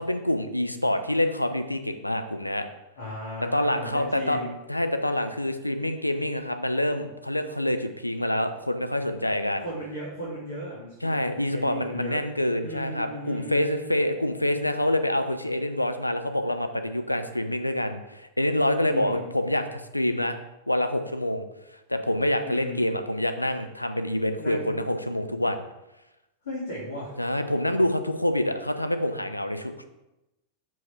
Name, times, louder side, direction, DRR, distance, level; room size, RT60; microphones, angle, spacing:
voice 1, 0.0-2.7 3.4-4.4 4.7-9.7 11.0-20.4 20.7-21.5 21.9-25.6 27.2-29.8, left 1 dB, 85° left, 7 dB, 0.6 m, -26 dB
voice 2, 3.0-4.5 9.6-12.2 12.6-13.7 18.9-19.3 22.4-22.9 24.4-24.7 26.4-27.1, left 1 dB, 65° left, -5 dB, 2.2 m, -36 dB
5.8 x 5.0 x 5.7 m, 0.94 s
figure-of-eight pair, 90°, 0 cm